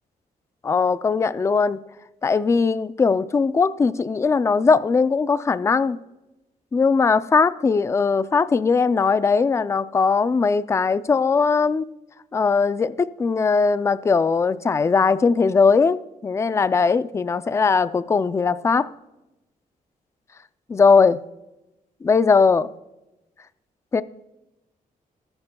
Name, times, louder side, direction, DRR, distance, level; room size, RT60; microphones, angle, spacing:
voice 1, 0.6-1.8 2.2-6.0 6.7-11.9 12.3-18.9 20.7-21.2 22.0-22.7 23.9-24.0, left 5 dB, 20° left, 0.3 m, -19 dB
19.5 x 9.7 x 2.2 m
wide cardioid pair, 160°, 15 cm